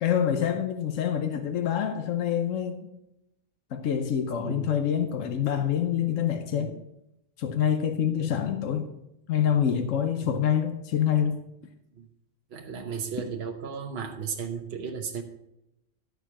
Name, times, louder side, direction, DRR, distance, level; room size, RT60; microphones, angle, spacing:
voice 1, 0.0-2.9 3.7-6.8 7.4-8.9 9.3-11.4, left 9 dB, 80° left, 7 dB, 1.2 m, -26 dB
voice 2, 6.5-6.8 10.2-10.4 12.0-12.1 12.5-15.2, right 6 dB, 55° right, 2 dB, 1.2 m, -35 dB
13.0 x 4.7 x 7.0 m, 0.86 s
omnidirectional pair, 1.3 m